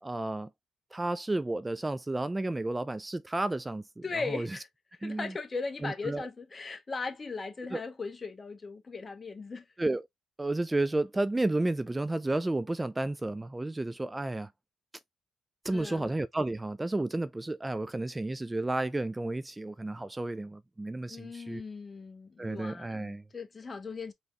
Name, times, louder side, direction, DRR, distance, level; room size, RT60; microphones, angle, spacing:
voice 1, 0.0-0.5 0.9-4.5 5.0-5.3 5.8-6.3 7.7-7.8 9.8-10.0 10.4-14.5 15.6-21.6 22.4-23.2, right 2 dB, 20° right, 0.4 m, -32 dB
voice 2, 4.0-4.7 5.0-9.6 15.7-16.1 21.1-24.1, left 4 dB, 35° left, 1.1 m, -38 dB
5.1 x 3.0 x 2.4 m
supercardioid pair, 60°, 0 cm